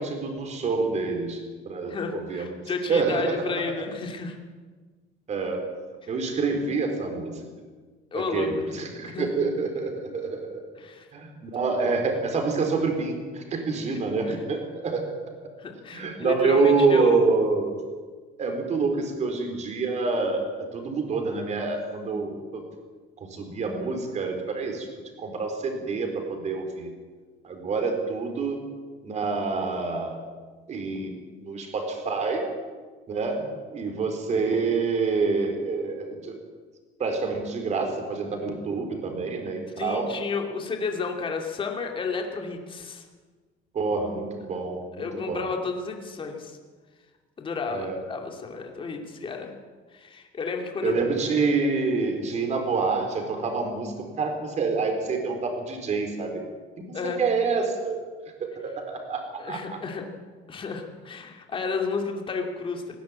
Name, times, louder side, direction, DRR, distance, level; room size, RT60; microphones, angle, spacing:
voice 1, 0.0-1.4 1.6-2.5 2.9-3.7 5.3-5.7 6.1-7.5 8.1-10.6 11.1-15.0 15.9-17.7 18.4-22.6 23.2-24.9 25.2-26.9 27.4-28.6 29.0-30.2 30.7-32.5 33.1-36.4 37.0-40.1 43.7-45.5 47.7-48.0 50.8-56.4 56.8-58.0 58.4-59.8, right 4 dB, 35° right, 4 dB, 4.3 m, -27 dB
voice 2, 1.9-4.4 6.0-6.1 8.1-9.4 10.8-11.1 14.3-14.4 15.6-17.2 39.8-43.1 45.0-46.6 47.4-49.5 49.9-51.0 56.9-57.2 59.4-60.0 60.5-63.0, left 4 dB, 25° left, 3 dB, 2.6 m, -32 dB
20.0 x 16.5 x 8.7 m, 1.4 s
cardioid pair, 160°, 20 cm